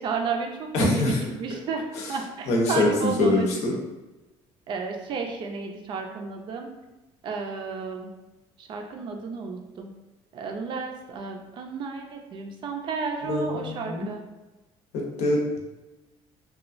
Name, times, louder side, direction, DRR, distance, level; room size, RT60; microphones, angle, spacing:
voice 1, 0.0-1.8 2.1-3.8 4.7-6.7 7.2-8.2 8.6-9.9 10.3-14.2, right 5 dB, 40° right, 3 dB, 0.4 m, -32 dB
voice 2, 0.7-1.2 2.0-2.1 2.5-3.7 13.3-14.1 14.9-15.6, left 2 dB, 70° left, 0 dB, 0.7 m, -24 dB
2.9 x 2.3 x 2.5 m, 1.1 s
cardioid pair, 165°, 12 cm